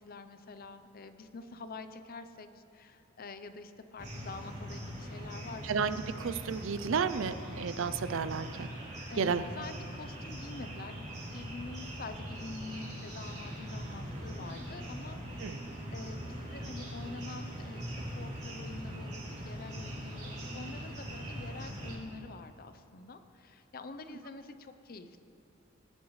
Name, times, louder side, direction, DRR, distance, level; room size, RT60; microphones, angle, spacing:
voice 1, 0.0-5.7 9.1-25.2, left 3 dB, 45° left, 10 dB, 0.6 m, -46 dB
sound 1, 4.0-22.0, equal, 35° right, 3.4 m, -41 dB
voice 2, 5.6-8.7 9.2-9.4 15.4-15.6, right 6 dB, 65° right, 13 dB, 0.5 m, -32 dB
19.5 x 11.0 x 3.2 m, 2.6 s
head